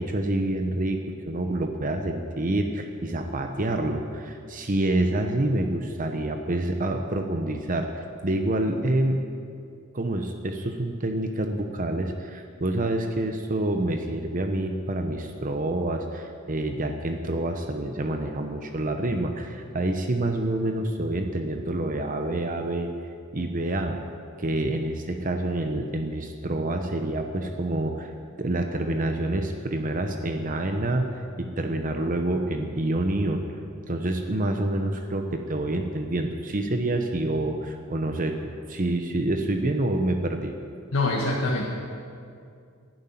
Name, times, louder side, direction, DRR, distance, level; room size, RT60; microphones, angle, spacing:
voice 1, 0.0-9.2 9.9-22.9 23.3-24.0 24.4-28.1 28.4-33.5 33.9-38.4 38.7-40.6, right 1 dB, 40° right, 5 dB, 0.9 m, -27 dB
voice 2, 40.9-41.6, left 2 dB, 85° left, -4 dB, 1.8 m, -24 dB
12.0 x 11.5 x 9.2 m, 2.4 s
head